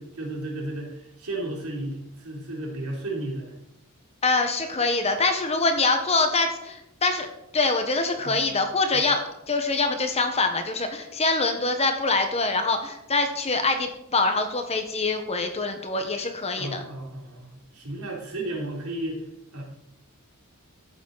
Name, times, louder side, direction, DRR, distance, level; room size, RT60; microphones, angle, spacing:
voice 1, 0.0-3.5 8.2-8.5 8.9-9.1 16.6-19.3 19.5-19.6, right 1 dB, 75° right, -2 dB, 3.3 m, -33 dB
voice 2, 4.2-7.3 7.5-9.2 9.5-16.8, left 3 dB, 30° left, 6 dB, 1.2 m, -24 dB
13.0 x 8.2 x 4.1 m, 0.83 s
head